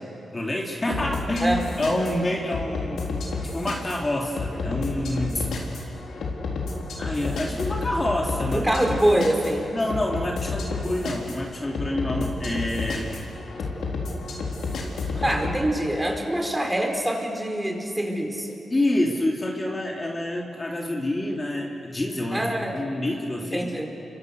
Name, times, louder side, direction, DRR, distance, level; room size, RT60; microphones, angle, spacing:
voice 1, 0.3-3.0 3.5-5.5 7.0-8.7 9.7-13.2 15.1-15.4 18.7-23.8, left 1 dB, 30° left, -1 dB, 3.4 m, -27 dB
sound 1, 0.9-15.6, left 3 dB, 80° left, 4.0 m, -31 dB
voice 2, 8.5-9.6 15.2-18.6 22.3-22.9 23.5-23.9, right 1 dB, 15° right, 2 dB, 4.8 m, -24 dB
28.5 x 25.0 x 6.7 m, 2.7 s
cardioid pair, 65°, 0 cm